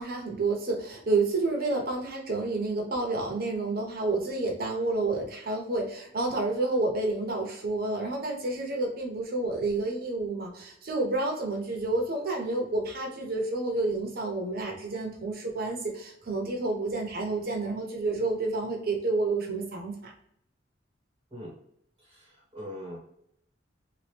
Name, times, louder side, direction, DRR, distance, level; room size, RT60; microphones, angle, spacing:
voice 1, 0.0-20.1, right 2 dB, 55° right, 1 dB, 0.9 m, -29 dB
voice 2, 22.0-23.0, equal, 25° right, -5 dB, 1.0 m, -42 dB
3.0 x 2.5 x 3.3 m, 0.71 s
head